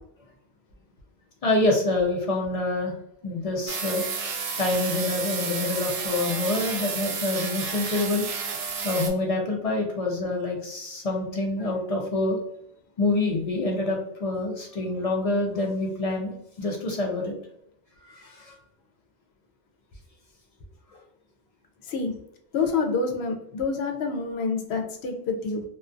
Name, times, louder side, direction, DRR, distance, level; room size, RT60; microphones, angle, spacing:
voice 1, 1.4-2.9 3.2-4.1 4.6-8.3 8.8-12.4 13.0-16.3 16.6-17.4 18.1-18.5 20.9-21.0, left 2 dB, 55° left, 1 dB, 0.4 m, -26 dB
sound 1, 3.7-9.1, right 5 dB, 75° right, 0.8 m, -31 dB
voice 2, 21.8-22.1 22.5-25.6, left 4 dB, 80° left, 3 dB, 0.8 m, -27 dB
2.3 x 2.3 x 2.5 m, 0.75 s
omnidirectional pair, 1.1 m